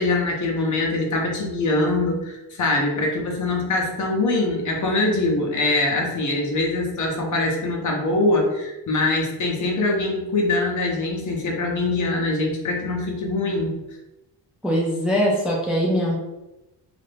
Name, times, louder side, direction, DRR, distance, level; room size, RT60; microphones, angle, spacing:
voice 1, 0.0-13.7, left 2 dB, 45° left, 0 dB, 0.7 m, -23 dB
voice 2, 14.6-16.2, equal, ahead, -4 dB, 0.4 m, -21 dB
2.6 x 2.5 x 3.4 m, 0.97 s
cardioid pair, 135°, 41 cm